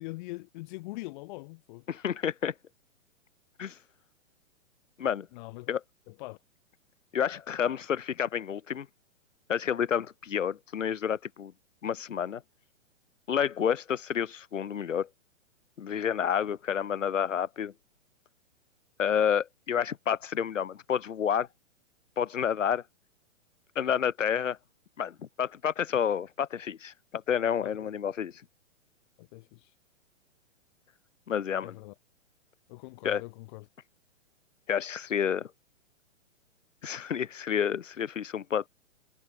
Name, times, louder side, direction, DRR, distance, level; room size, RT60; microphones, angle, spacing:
voice 1, 0.0-1.8 5.3-5.8 6.1-6.4 27.6-27.9 29.2-29.7 31.6-31.9 32.7-33.6, left 22 dB, 40° left, 2.6 m, -42 dB
voice 2, 1.9-2.5 3.6-3.8 5.0-5.3 5.7-5.8 7.1-8.9 9.5-11.5 11.8-12.4 13.3-15.1 15.8-17.7 19.0-21.5 22.2-22.8 23.7-24.6 25.0-28.4 31.3-31.8 33.0-33.2 34.7-35.5 36.8-38.7, left 8 dB, 75° left, 4.9 m, -29 dB
hypercardioid pair, 145°, 38 cm